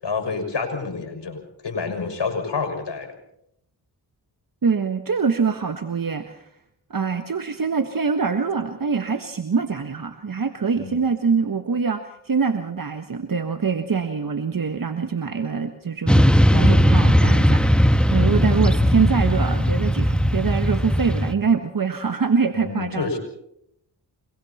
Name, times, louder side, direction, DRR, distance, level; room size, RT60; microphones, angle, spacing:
voice 1, 0.0-3.1 10.8-11.0 22.6-23.2, left 4 dB, 70° left, 4 dB, 6.3 m, -28 dB
voice 2, 4.6-6.5 6.9-23.1, right 5 dB, 50° right, 8 dB, 1.5 m, -24 dB
Motorcycle / Traffic noise roadway noise, 16.1-21.3, equal, ahead, 1.4 m, -18 dB
29.0 x 22.5 x 4.3 m, 0.75 s
cardioid pair, 45°, 43 cm